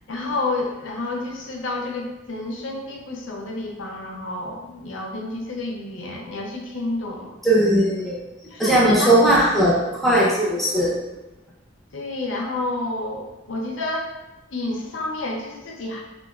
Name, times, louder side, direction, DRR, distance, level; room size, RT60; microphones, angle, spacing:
voice 1, 0.1-7.3 8.5-9.6 11.9-14.1 14.5-16.0, left 2 dB, 90° left, 0 dB, 0.5 m, -30 dB
voice 2, 7.4-8.2 8.6-11.0, right 1 dB, ahead, -6 dB, 0.5 m, -18 dB
2.8 x 2.2 x 2.3 m, 1.0 s
head